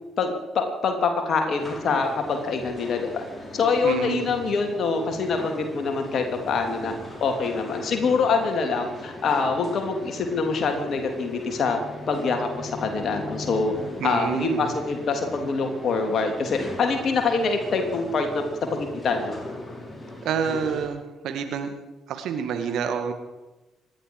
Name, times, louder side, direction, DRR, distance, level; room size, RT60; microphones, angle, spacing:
voice 1, 0.2-3.2 3.5-6.9 7.2-11.8 12.1-13.7 14.0-18.4 18.7-19.3, left 4 dB, 50° left, 4 dB, 3.1 m, -25 dB
sound 1, 1.6-20.9, left 1 dB, 15° left, 5.4 m, -39 dB
voice 2, 3.8-4.4 14.0-14.7 20.2-21.7 22.1-23.1, right 7 dB, 60° right, 6 dB, 1.9 m, -28 dB
26.5 x 11.0 x 4.9 m, 1.1 s
figure-of-eight pair, 40°, 0 cm